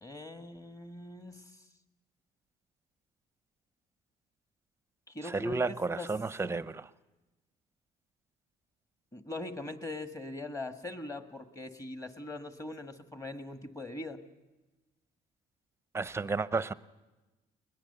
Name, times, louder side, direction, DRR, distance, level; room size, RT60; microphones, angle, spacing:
voice 1, 0.0-1.6 5.1-6.1 9.1-14.2, left 2 dB, 20° left, 1.6 m, -42 dB
voice 2, 5.2-6.9 15.9-16.7, right 3 dB, 15° right, 0.6 m, -32 dB
21.5 x 20.5 x 6.8 m
cardioid pair, 110°, 17 cm